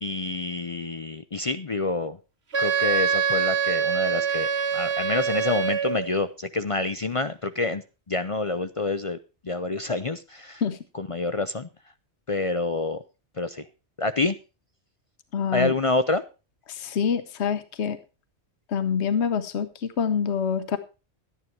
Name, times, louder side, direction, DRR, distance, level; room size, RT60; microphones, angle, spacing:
voice 1, 0.0-2.2 2.6-7.8 8.1-9.2 9.4-10.6 10.9-11.7 12.3-13.0 13.4-13.7 14.0-14.4 15.5-16.2, left 3 dB, 40° left, 11 dB, 0.5 m, -27 dB
Wind instrument woodwind instrument, 2.5-6.1, right 7 dB, 65° right, 1.9 m, -24 dB
voice 2, 15.3-15.7 16.7-18.0 18.7-20.8, left 7 dB, 70° left, 11 dB, 1.2 m, -26 dB
12.5 x 10.0 x 4.5 m, 0.31 s
omnidirectional pair, 1.2 m